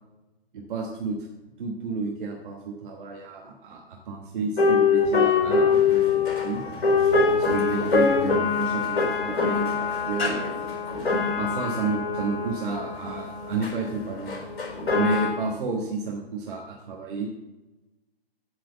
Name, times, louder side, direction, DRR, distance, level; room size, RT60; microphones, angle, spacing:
voice 1, 0.5-1.2 1.6-6.6 7.3-10.6 11.4-14.4 14.9-17.3, right 4 dB, 55° right, 0 dB, 1.4 m, -31 dB
sound 1, 4.6-15.3, left 5 dB, 70° left, 3.7 m, -24 dB
8.1 x 4.8 x 7.0 m, 1.0 s
figure-of-eight pair, 125°, 31 cm